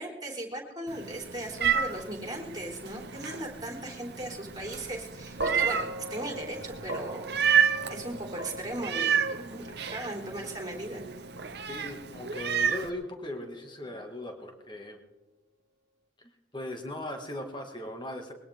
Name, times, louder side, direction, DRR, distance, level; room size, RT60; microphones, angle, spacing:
voice 1, 0.0-7.4 7.9-11.0, right 1 dB, 20° right, 0 dB, 3.5 m, -38 dB
Meow, 0.9-12.9, right 7 dB, 55° right, 0.9 m, -31 dB
sound 1, 5.4-13.7, right 2 dB, 70° right, 1.6 m, -40 dB
voice 2, 11.7-15.0 16.2-18.3, left 1 dB, 25° left, 3 dB, 2.0 m, -39 dB
22.0 x 17.0 x 3.7 m, 1.1 s
head